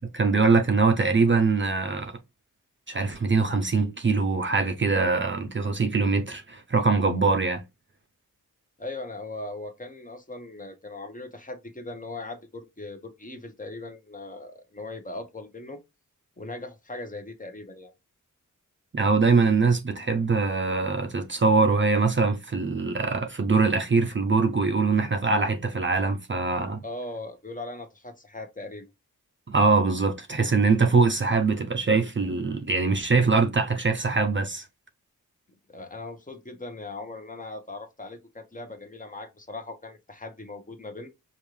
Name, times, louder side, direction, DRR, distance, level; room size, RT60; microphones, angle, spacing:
voice 1, 0.0-2.1 2.9-7.6 18.9-26.8 29.5-34.7, right 4 dB, 35° right, 0.5 m, -23 dB
voice 2, 8.8-15.8 16.4-17.9 26.8-28.9 35.7-41.1, left 2 dB, 25° left, 0.9 m, -39 dB
5.2 x 2.5 x 3.1 m
wide cardioid pair, 110°, 32 cm